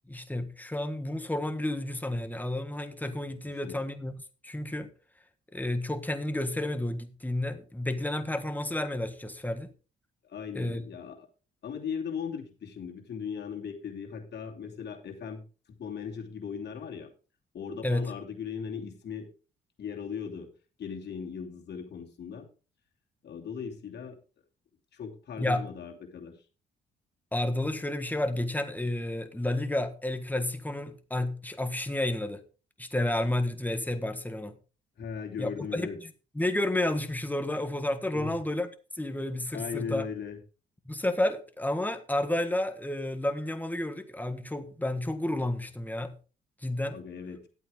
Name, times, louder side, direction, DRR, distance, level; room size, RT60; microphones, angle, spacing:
voice 1, 0.1-4.1 4.4-4.9 5.5-9.7 10.5-10.9 17.8-18.1 25.4-25.6 27.3-32.4 32.8-34.5 35.4-35.9 36.3-38.7 38.9-40.1 40.8-46.1 46.6-47.0, left 1 dB, 10° left, 1.5 m, -31 dB
voice 2, 3.4-3.7 10.2-11.3 11.6-15.4 15.7-17.1 17.5-19.3 19.8-20.5 20.8-22.5 23.2-24.2 24.9-26.4 35.0-36.0 38.1-38.3 39.5-40.4 46.9-47.5, left 6 dB, 60° left, 2.9 m, -38 dB
12.5 x 8.3 x 3.7 m
cardioid pair, 90°, 20 cm